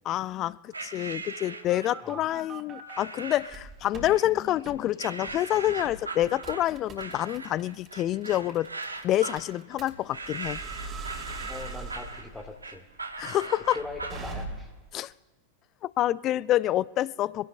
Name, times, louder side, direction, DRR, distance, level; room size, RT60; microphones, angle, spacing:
voice 1, 0.0-8.7 9.0-10.6 13.2-13.8 14.9-15.1 15.8-17.5, left 13 dB, 35° left, 0.4 m, -27 dB
sound 1, 0.7-2.1 2.9-3.6 4.0-4.6 5.0-14.3, right 3 dB, 80° right, 1.0 m, -39 dB
sound 2, 1.2-3.0 3.5-4.1 4.7-4.8 5.3-5.5 5.9-14.9, right 3 dB, 25° right, 2.6 m, -42 dB
voice 2, 11.5-12.8 13.7-14.7, left 3 dB, 10° left, 1.6 m, -40 dB
25.0 x 17.0 x 2.2 m
figure-of-eight pair, 90°, 0 cm